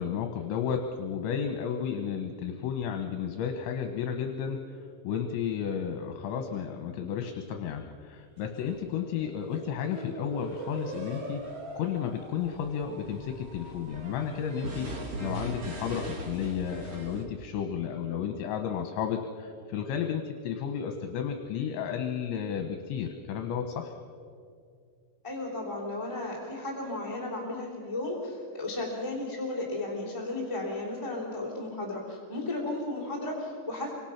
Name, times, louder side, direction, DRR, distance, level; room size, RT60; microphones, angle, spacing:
voice 1, 0.0-11.4 11.8-24.0, left 8 dB, 75° left, 5 dB, 3.2 m, -33 dB
sound 1, 8.5-17.2, right 1 dB, 40° right, 2.8 m, -40 dB
voice 2, 25.2-34.0, left 2 dB, 10° left, -4 dB, 2.5 m, -34 dB
28.0 x 25.0 x 5.9 m, 2.3 s
omnidirectional pair, 5.8 m